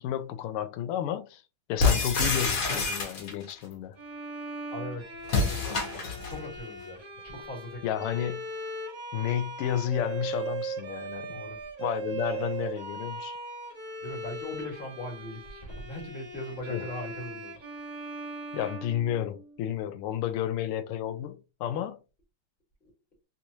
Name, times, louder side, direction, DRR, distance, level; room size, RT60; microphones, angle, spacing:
voice 1, 0.0-1.4 1.7-4.0 7.8-8.5 9.1-11.3 11.8-13.4 16.7-16.8 18.5-22.0, left 10 dB, 90° left, 1.5 m, -31 dB
sound 1, 1.8-3.5 5.2-6.4, left 4 dB, 50° left, 1.2 m, -27 dB
Bowed string instrument, 4.0-19.7, right 3 dB, 40° right, 1.4 m, -39 dB
voice 2, 4.7-5.1 5.3-7.0 7.2-8.0 11.3-11.6 14.0-17.6, left 1 dB, 30° left, 1.4 m, -40 dB
3.5 x 3.0 x 2.6 m
omnidirectional pair, 2.4 m